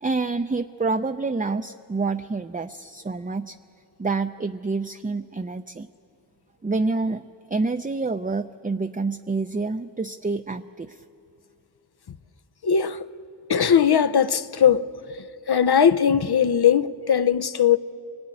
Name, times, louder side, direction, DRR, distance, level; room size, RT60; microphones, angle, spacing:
voice 1, 0.0-3.6 4.0-5.9 6.6-11.0, right 3 dB, 20° right, 0.5 m, -27 dB
voice 2, 12.6-13.1 13.5-14.8 15.5-17.8, left 8 dB, 65° left, 0.7 m, -19 dB
24.5 x 19.5 x 9.7 m
wide cardioid pair, 65°, 41 cm